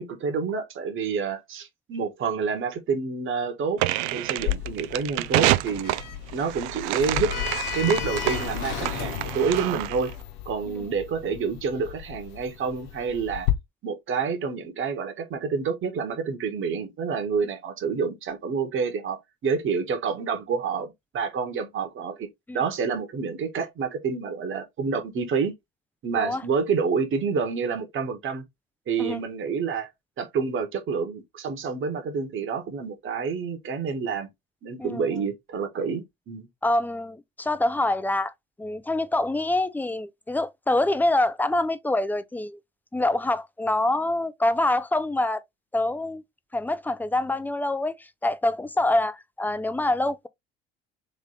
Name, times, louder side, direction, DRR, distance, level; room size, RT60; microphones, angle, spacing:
voice 1, 0.0-5.9 6.3-7.3 7.7-10.1 10.4-13.5 13.8-22.3 22.5-25.5 26.0-28.4 28.9-29.9 30.2-34.3 34.6-36.5, right 5 dB, 40° right, 1.4 m, -28 dB
sound 1, 3.8-10.1, right 17 dB, 65° right, 0.5 m, -28 dB
Sliding door, 4.4-13.5, left 11 dB, 65° left, 1.1 m, -33 dB
voice 2, 34.8-35.2 36.6-38.3 38.6-42.6 42.9-45.4 45.7-46.2 46.5-50.3, left 2 dB, 5° left, 0.5 m, -25 dB
3.6 x 3.3 x 4.0 m
hypercardioid pair, 65°, 31 cm